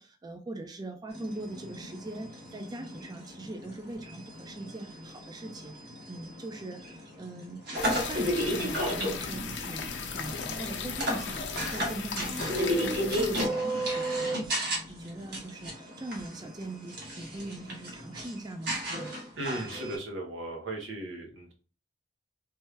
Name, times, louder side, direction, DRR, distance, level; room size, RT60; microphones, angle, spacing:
voice 1, 0.0-5.8 6.1-11.4 11.7-14.6 14.9-19.1, right 2 dB, 20° right, 4 dB, 0.4 m, -41 dB
sound 1, 1.1-20.0, equal, 60° right, 1.3 m, -34 dB
sound 2, 7.8-13.5, left 5 dB, 65° left, 0.6 m, -37 dB
voice 2, 19.4-21.5, right 1 dB, 85° right, 0 dB, 1.3 m, -36 dB
3.3 x 3.2 x 3.3 m, 0.37 s
head